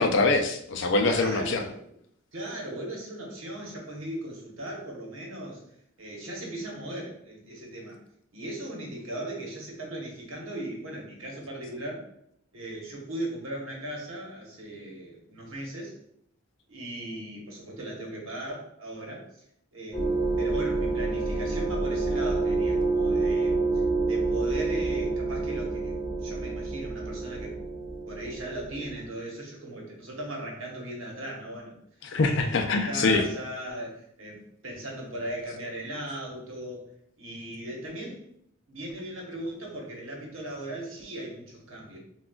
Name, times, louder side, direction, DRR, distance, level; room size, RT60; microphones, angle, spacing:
voice 1, 0.0-1.6 32.0-33.2, left 3 dB, 60° left, 5 dB, 0.5 m, -24 dB
voice 2, 1.1-1.9 2.3-5.6 6.0-8.0 8.3-12.1 12.5-15.9 16.7-19.2 19.7-23.6 24.0-26.0 26.2-27.6 28.1-31.8 32.3-36.9 37.2-38.2 38.7-42.0, right 1 dB, 70° right, -1 dB, 1.0 m, -38 dB
sound 1, 19.9-29.1, right 3 dB, 5° left, 1.5 m, -28 dB
6.0 x 2.3 x 2.3 m, 0.71 s
head